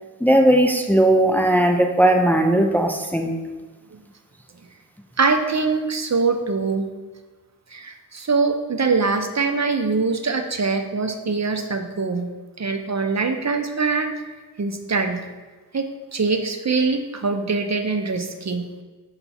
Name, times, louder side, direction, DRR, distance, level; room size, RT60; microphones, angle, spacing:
voice 1, 0.2-3.4, right 1 dB, 5° left, 4 dB, 0.5 m, -17 dB
voice 2, 5.2-6.9 7.7-12.3 12.6-14.1 14.6-15.2 15.7-15.9 16.1-18.6, right 4 dB, 50° right, 5 dB, 0.7 m, -23 dB
5.7 x 5.7 x 4.1 m, 1.3 s
wide cardioid pair, 80°, 34 cm